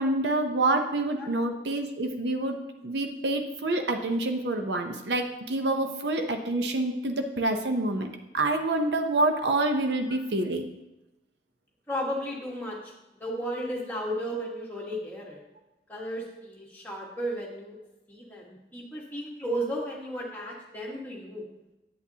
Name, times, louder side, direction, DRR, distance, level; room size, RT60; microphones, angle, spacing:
voice 1, 0.0-2.6 2.8-10.7, right 2 dB, 80° right, 5 dB, 0.7 m, -27 dB
voice 2, 11.9-15.4 15.9-17.8 18.1-21.4, equal, 10° left, -4 dB, 1.5 m, -34 dB
8.4 x 8.4 x 2.8 m, 0.96 s
head